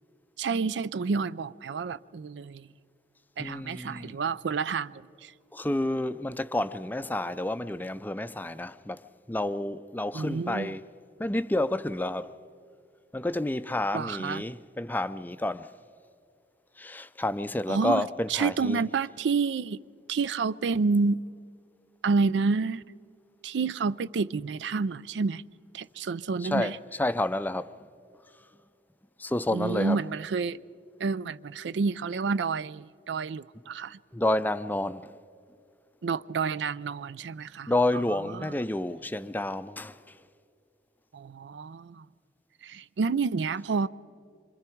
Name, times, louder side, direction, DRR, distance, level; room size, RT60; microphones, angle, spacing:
voice 1, 0.4-2.7 3.4-5.3 10.1-10.7 13.9-14.4 17.7-19.8 20.1-21.2 22.0-22.8 23.4-25.4 25.7-26.8 29.5-30.6 31.0-34.0 36.0-37.7 38.3-38.5 41.1-42.0 42.6-43.9, right 4 dB, 85° right, 0.4 m, -29 dB
voice 2, 3.4-4.2 5.5-10.9 11.2-12.4 13.1-15.7 16.8-18.8 26.4-27.7 29.2-30.0 34.1-35.1 37.7-40.2, left 1 dB, 10° left, 0.4 m, -30 dB
26.5 x 25.0 x 4.6 m
head